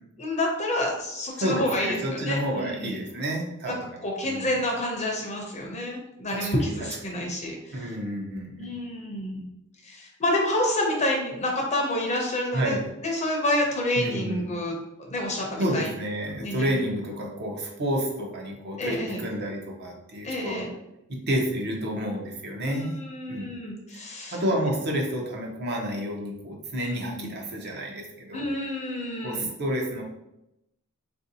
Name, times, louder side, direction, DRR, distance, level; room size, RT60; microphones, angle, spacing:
voice 1, 0.2-3.0 3.7-3.8 4.0-7.9 8.6-9.4 9.8-12.8 13.0-14.7 15.0-15.9 16.3-16.7 18.8-19.2 20.2-20.7 22.6-24.4 26.8-27.3 28.3-29.5, left 1 dB, 30° left, 0 dB, 0.5 m, -28 dB
voice 2, 1.4-3.9 4.2-4.5 6.3-6.5 6.8-7.2 7.7-8.7 12.5-12.9 14.0-14.4 15.6-20.6 21.1-23.0 23.3-23.5 24.3-28.4 29.2-30.0, equal, 50° right, 1 dB, 0.7 m, -30 dB
3.5 x 2.6 x 2.7 m, 0.87 s
head